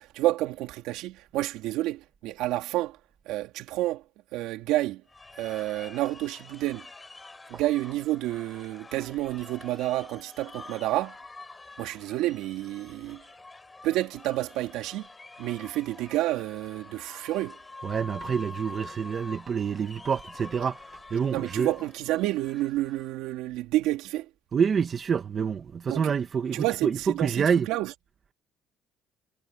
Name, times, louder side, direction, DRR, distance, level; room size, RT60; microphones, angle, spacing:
voice 1, 0.0-3.0 3.3-4.0 4.3-5.0 5.4-6.9 7.5-11.2 11.8-13.2 13.8-15.1 15.4-17.6 21.3-24.3 25.9-26.1 26.5-27.9, right 16 dB, 80° right, 3.6 m, -29 dB
sound 1, 5.1-23.1, left 3 dB, 15° left, 5.6 m, -47 dB
voice 2, 17.8-20.8 21.1-21.7 24.5-27.7, right 6 dB, 35° right, 2.0 m, -27 dB
cardioid pair, 130°, 0 cm